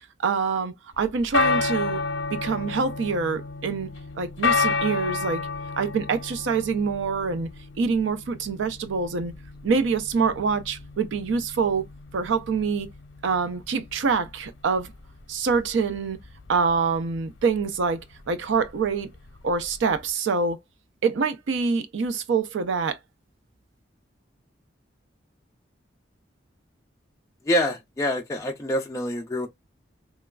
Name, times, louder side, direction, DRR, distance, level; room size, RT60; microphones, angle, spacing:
voice 1, 0.0-2.0 2.3-3.9 4.2-5.5 5.8-7.5 7.8-9.3 9.6-11.9 12.1-12.9 13.2-14.9 15.3-16.2 16.5-19.1 19.4-20.6 21.0-23.0, right 5 dB, 80° right, 0.4 m, -25 dB
sound 1, 1.0-20.0, left 4 dB, 75° left, 0.7 m, -31 dB
voice 2, 27.5-29.5, left 1 dB, 15° left, 0.3 m, -26 dB
3.0 x 2.2 x 2.3 m
head